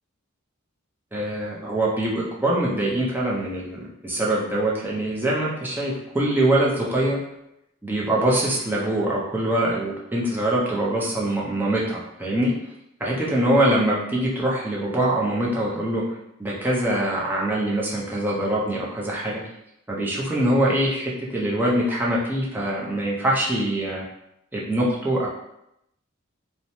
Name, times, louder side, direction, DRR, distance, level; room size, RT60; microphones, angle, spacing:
voice 1, 1.1-7.2 7.8-12.5 13.0-16.0 16.4-19.4 19.9-24.0 24.5-25.3, right 1 dB, 10° right, -5 dB, 0.5 m, -23 dB
2.9 x 2.0 x 2.6 m, 0.82 s
head